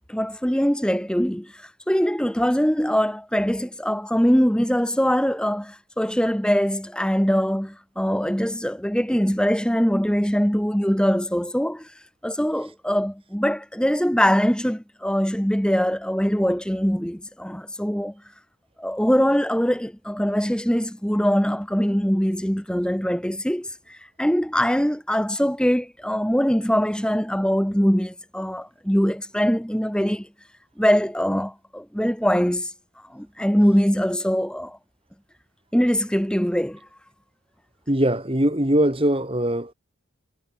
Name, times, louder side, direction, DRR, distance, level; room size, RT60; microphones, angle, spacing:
voice 1, 0.1-11.9 12.2-18.1 18.8-30.3 30.8-32.7 33.1-34.8 35.7-36.8, equal, 5° left, 1.5 m, -22 dB
voice 2, 37.9-39.7, right 1 dB, 25° right, 2.3 m, -21 dB
head